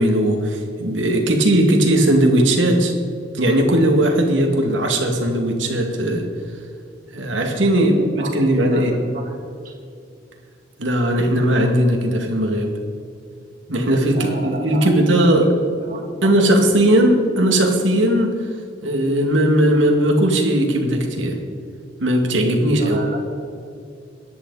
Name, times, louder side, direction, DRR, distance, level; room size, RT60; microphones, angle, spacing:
voice 1, 0.0-2.9 3.3-6.3 7.1-8.9 10.8-12.7 13.7-15.5 16.2-18.4 18.8-21.4 22.0-23.0, right 1 dB, 90° right, 2 dB, 2.3 m, -18 dB
voice 2, 7.7-9.4 9.6-9.8 14.1-15.0 15.8-16.3 22.8-23.2, right 2 dB, 45° right, -1 dB, 2.7 m, -33 dB
23.0 x 10.0 x 4.2 m, 2.4 s
head